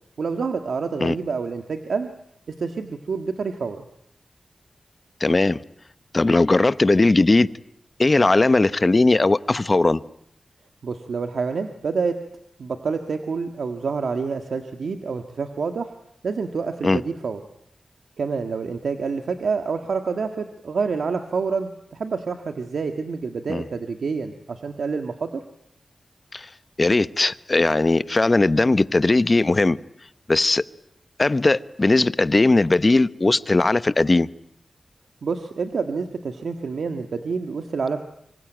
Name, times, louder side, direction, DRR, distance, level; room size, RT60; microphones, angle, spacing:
voice 1, 0.2-2.1 2.6-3.8 10.8-12.1 12.6-15.9 16.2-17.4 18.2-25.4 35.2-38.0, right 5 dB, 90° right, 1.6 m, -27 dB
voice 2, 5.2-5.6 6.1-7.5 8.0-10.0 16.8-17.0 23.5-23.6 26.3-26.5 26.8-29.8 30.3-30.6 31.2-34.3, left 2 dB, 40° left, 1.0 m, -18 dB
25.5 x 25.0 x 9.2 m
cardioid pair, 50°, 0 cm